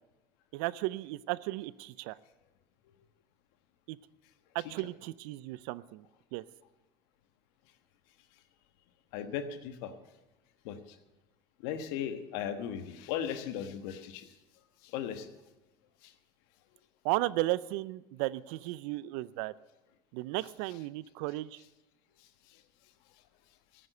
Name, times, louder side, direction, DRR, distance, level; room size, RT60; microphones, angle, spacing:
voice 1, 0.5-2.2 3.9-4.0 4.5-6.1 6.3-6.4 17.0-19.5 20.1-21.6, right 18 dB, 75° right, 20 dB, 0.5 m, -34 dB
voice 2, 9.1-9.9 10.6-10.8 11.6-14.3 14.9-15.3, left 9 dB, 75° left, 9 dB, 1.3 m, -36 dB
14.5 x 9.4 x 6.8 m, 1.0 s
supercardioid pair, 85°, 13 cm